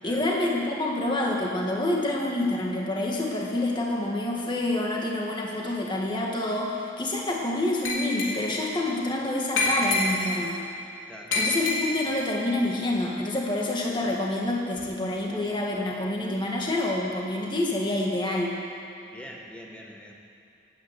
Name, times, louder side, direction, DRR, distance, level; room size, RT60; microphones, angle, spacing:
voice 1, 0.0-10.6 11.3-18.5, left 1 dB, 25° left, -2 dB, 1.9 m, -27 dB
Glass, 7.8-8.6 9.6-10.5 11.3-12.2, left 2 dB, 85° left, 3.8 m, -27 dB
voice 2, 19.0-20.1, equal, 5° left, -1 dB, 1.6 m, -44 dB
18.0 x 9.4 x 8.3 m, 2.8 s
head